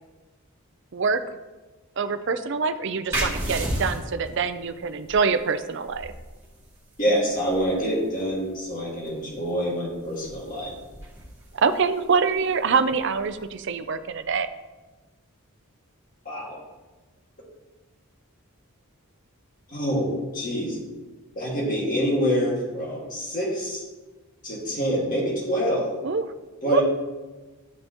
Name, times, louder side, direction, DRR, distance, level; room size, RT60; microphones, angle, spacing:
voice 1, 2.0-6.1 11.5-14.5 26.0-26.3 26.7-26.8, right 5 dB, 55° right, 10 dB, 0.5 m, -25 dB
sound 1, 3.1-14.4, right 1 dB, 15° right, 2.4 m, -36 dB
voice 2, 7.0-10.7 16.3-16.6 19.7-20.8 21.4-23.8 24.4-26.0 26.6-26.8, equal, 40° left, -3 dB, 2.0 m, -26 dB
12.0 x 5.5 x 3.0 m, 1.2 s
head